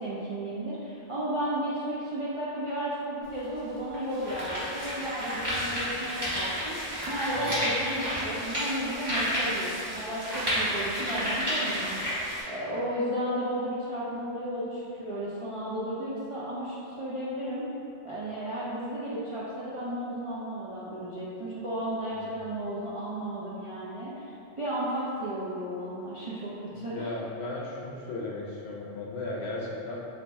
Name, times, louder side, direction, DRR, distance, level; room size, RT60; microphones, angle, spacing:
voice 1, 0.0-6.8 7.1-17.7 18.0-27.1, right 1 dB, 50° right, -10 dB, 0.4 m, -33 dB
sound 1, 3.2-3.3 3.9-12.4, equal, 20° right, 1.1 m, -31 dB
voice 2, 7.4-7.7 22.2-22.3 26.7-30.0, left 2 dB, 65° left, -3 dB, 0.8 m, -36 dB
4.1 x 2.6 x 3.4 m, 2.8 s
omnidirectional pair, 1.3 m